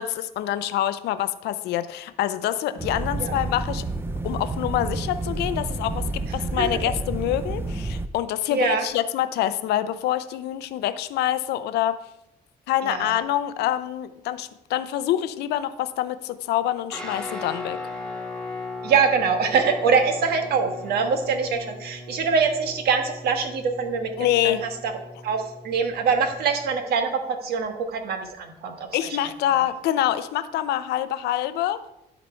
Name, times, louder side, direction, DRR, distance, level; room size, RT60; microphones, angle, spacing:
voice 1, 0.0-3.8 4.2-6.0 6.3-12.0 12.7-17.8 24.2-24.7 28.9-31.8, left 12 dB, 80° left, 12 dB, 0.6 m, -26 dB
sound 1, 2.8-8.1, right 3 dB, 15° right, 0.4 m, -30 dB
voice 2, 8.5-8.8 12.8-13.2 18.8-24.1 24.4-24.5 24.8-24.9 25.2-28.9 29.5-29.6, right 5 dB, 70° right, 5 dB, 1.3 m, -24 dB
Guitar, 16.9-26.7, left 2 dB, 5° left, 1.7 m, -38 dB
12.0 x 4.2 x 4.4 m, 0.86 s
cardioid pair, 110°, 17 cm